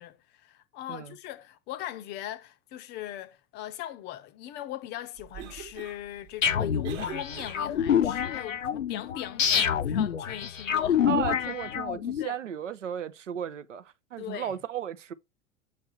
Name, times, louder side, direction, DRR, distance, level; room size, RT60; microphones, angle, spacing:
voice 1, 0.0-11.0 12.2-12.4 14.2-14.6, left 12 dB, 30° left, 0.6 m, -40 dB
Cough, 5.1-8.0, right 10 dB, 40° right, 1.1 m, -44 dB
sound 1, 6.4-12.2, left 8 dB, 80° left, 0.6 m, -27 dB
voice 2, 11.0-15.1, right 9 dB, 75° right, 0.6 m, -35 dB
7.0 x 3.3 x 4.3 m
figure-of-eight pair, 85°, 38 cm